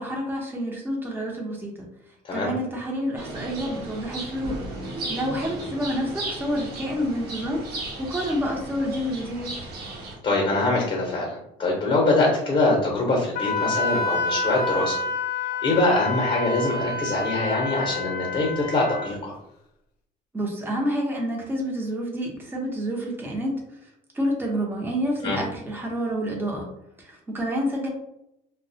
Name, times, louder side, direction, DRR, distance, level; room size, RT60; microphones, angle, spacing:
voice 1, 0.0-1.9 2.3-4.6 4.8-9.5 20.3-23.5 24.1-26.7 27.0-27.9, equal, 10° right, -1 dB, 0.6 m, -28 dB
sound 1, 3.2-10.2, right 2 dB, 65° right, 0.9 m, -35 dB
voice 2, 10.2-15.0 15.6-19.3 25.2-25.4, left 2 dB, 35° left, -1 dB, 0.7 m, -23 dB
Wind instrument woodwind instrument, 13.4-19.1, left 3 dB, 70° left, 0.5 m, -28 dB
2.2 x 2.1 x 2.7 m, 0.82 s
cardioid pair, 110°, 17 cm